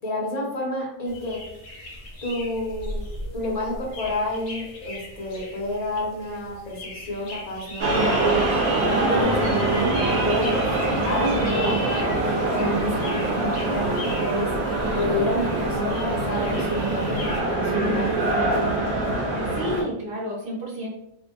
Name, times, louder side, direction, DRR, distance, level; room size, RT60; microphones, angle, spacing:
voice 1, 0.0-1.4 2.2-3.1 3.3-8.3 9.1-11.8 12.2-14.5 14.9-18.6, left 1 dB, 45° left, -3 dB, 0.8 m, -29 dB
sound 1, 1.1-17.4, left 1 dB, 75° left, 0.9 m, -39 dB
sound 2, 7.8-19.8, right 2 dB, 90° right, 1.0 m, -24 dB
voice 2, 8.8-9.1 19.3-20.9, equal, 60° right, -4 dB, 1.0 m, -32 dB
sound 3, 9.2-15.5, left 4 dB, 35° right, 0.6 m, -41 dB
2.5 x 2.1 x 2.7 m, 0.80 s
omnidirectional pair, 1.1 m